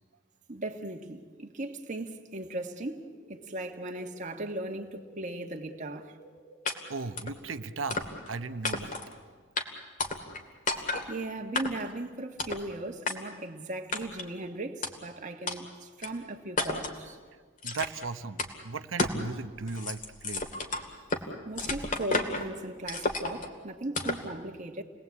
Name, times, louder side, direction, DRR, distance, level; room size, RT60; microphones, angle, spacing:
voice 1, 0.5-6.2 11.1-17.2 21.4-24.8, right 1 dB, 40° right, 2 dB, 1.6 m, -38 dB
sound 1, 2.4-8.8, equal, 85° left, 4.7 m, -56 dB
sound 2, 6.7-6.8 7.2-7.4 7.9-8.3 8.6-9.1 9.6-9.7 10.0-10.4 10.7-11.1 11.5-11.9 12.4-12.6 13.1-13.2 13.9-14.3 14.8-14.9 15.5-15.6 16.0-16.1 16.6-17.0 17.6-18.1 18.4-18.5 19.0-19.2 19.6-21.2 21.6-22.5 22.9-23.5 23.9-24.3, left 3 dB, 40° left, 2.4 m, -32 dB
voice 2, 6.9-8.9 17.6-20.4, right 4 dB, 80° right, 12 dB, 1.0 m, -36 dB
29.5 x 20.0 x 8.5 m, 1.5 s
head